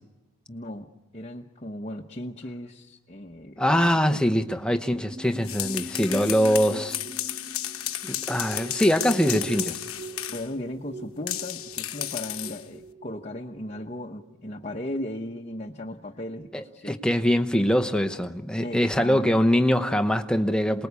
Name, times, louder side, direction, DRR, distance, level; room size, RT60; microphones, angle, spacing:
voice 1, 0.5-0.9 1.1-3.6 4.1-4.4 6.7-6.8 10.3-17.0 18.6-19.3, left 1 dB, 30° left, 1.0 m, -36 dB
voice 2, 3.6-6.9 8.0-9.8 16.5-20.9, equal, 5° left, 1.0 m, -23 dB
sound 1, 4.4-14.8 15.0-15.3, right 2 dB, 30° right, 2.7 m, -42 dB
sound 2, 5.3-10.5 11.3-12.7, left 13 dB, 85° left, 1.1 m, -33 dB
28.0 x 20.0 x 8.4 m
head